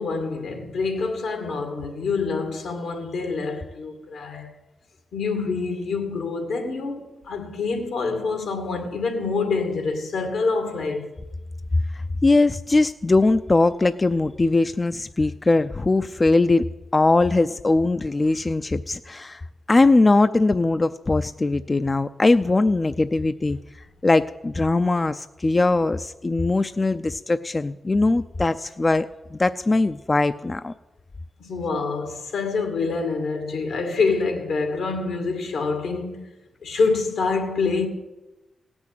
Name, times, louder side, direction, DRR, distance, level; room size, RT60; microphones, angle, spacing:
voice 1, 0.0-4.5 5.1-11.1 31.4-36.3 36.6-37.9, left 4 dB, 85° left, 2.3 m, -26 dB
voice 2, 11.9-16.7 16.9-19.4 19.7-23.6 24.0-30.7, left 2 dB, 35° left, 0.5 m, -20 dB
17.0 x 6.2 x 8.9 m
supercardioid pair, 45°, 0 cm